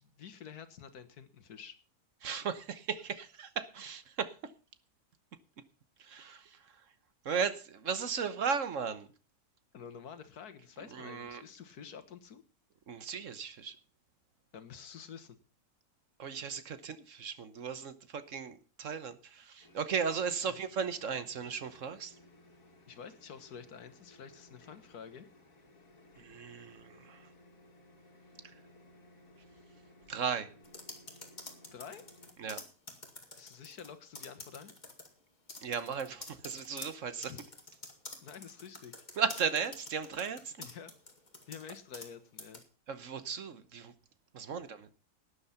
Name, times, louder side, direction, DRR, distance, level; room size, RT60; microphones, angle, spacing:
voice 1, 0.0-1.7 9.7-12.4 14.5-15.4 20.5-20.6 22.9-25.3 31.7-32.0 33.4-34.8 37.3-37.5 38.2-39.1 40.6-40.9 41.5-42.6, left 7 dB, 80° left, 11 dB, 1.8 m, -49 dB
voice 2, 2.2-4.5 6.0-6.8 7.2-9.1 10.9-11.4 12.9-13.8 16.2-22.1 26.2-27.3 30.1-30.5 32.4-32.6 35.6-37.3 39.2-40.7 42.9-43.9 44.3-44.9, right 6 dB, 55° right, 12 dB, 1.3 m, -36 dB
sound 1, 19.6-32.3, left 1 dB, 60° left, 2.5 m, -60 dB
sound 2, 30.6-33.9 34.1-35.1 35.5-42.1 42.4-42.6, left 2 dB, 30° left, 2.2 m, -47 dB
12.5 x 9.7 x 5.7 m, 0.36 s
omnidirectional pair, 1.6 m